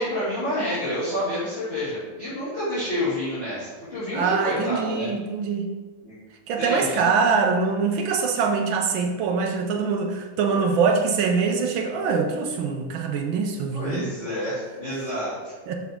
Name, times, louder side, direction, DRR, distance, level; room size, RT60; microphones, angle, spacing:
voice 1, 0.0-5.1 6.0-6.1 6.6-7.0 13.7-15.5, left 1 dB, 30° left, -13 dB, 2.7 m, -28 dB
voice 2, 4.1-5.7 6.5-14.1 15.7-15.8, right 5 dB, 70° right, 3 dB, 1.5 m, -23 dB
7.0 x 5.9 x 3.6 m, 1.3 s
omnidirectional pair, 2.3 m